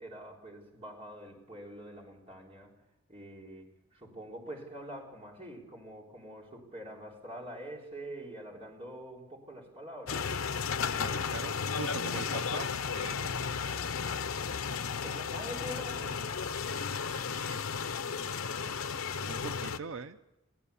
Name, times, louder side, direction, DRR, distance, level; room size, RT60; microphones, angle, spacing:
voice 1, 0.0-2.7 3.1-10.3 15.0-16.3 18.0-19.5, right 1 dB, 30° right, -1 dB, 4.0 m, -46 dB
sound 1, 10.1-19.8, left 6 dB, 90° left, 0.8 m, -34 dB
voice 2, 11.0-13.3 17.2-17.7 19.3-20.2, right 4 dB, 80° right, 10 dB, 0.7 m, -42 dB
22.5 x 16.5 x 7.1 m, 0.92 s
head